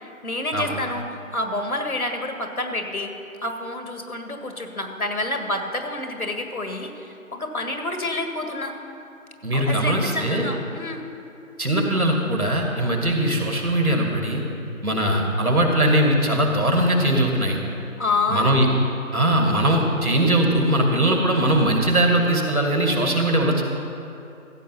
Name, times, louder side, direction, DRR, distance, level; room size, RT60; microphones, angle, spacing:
voice 1, 0.2-3.1 3.4-8.7 9.5-11.0 18.0-18.7, left 2 dB, 85° left, 5 dB, 1.8 m, -28 dB
voice 2, 9.4-10.5 11.6-14.4 14.8-17.6 18.3-18.7 19.1-23.6, right 1 dB, 85° right, 1 dB, 2.3 m, -20 dB
14.5 x 7.7 x 5.6 m, 2.7 s
figure-of-eight pair, 170°, 42 cm